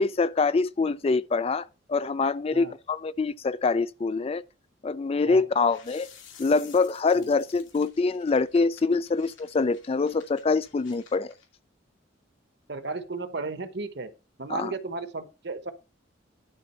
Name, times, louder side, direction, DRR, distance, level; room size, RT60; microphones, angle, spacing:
voice 1, 0.0-4.4 4.8-6.1 6.4-11.3 14.5-14.7, left 4 dB, 30° left, 0.3 m, -25 dB
sound 1, 5.6-11.5, left 7 dB, 80° left, 2.3 m, -53 dB
voice 2, 12.7-14.1 14.4-15.7, right 3 dB, 60° right, 1.0 m, -34 dB
11.5 x 3.9 x 5.5 m
head